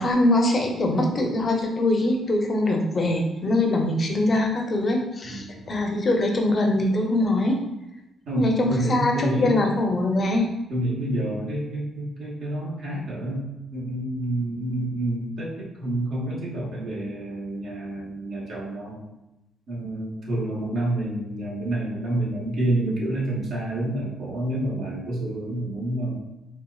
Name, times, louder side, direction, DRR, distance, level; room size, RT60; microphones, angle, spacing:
voice 1, 0.0-7.6 8.4-10.5, left 1 dB, 40° left, 1 dB, 0.7 m, -23 dB
voice 2, 5.2-5.6 8.3-9.6 10.7-13.5 13.7-19.0 19.7-26.2, right 1 dB, 70° right, -5 dB, 1.2 m, -28 dB
4.3 x 2.4 x 2.3 m, 0.92 s
cardioid pair, 90°, 0 cm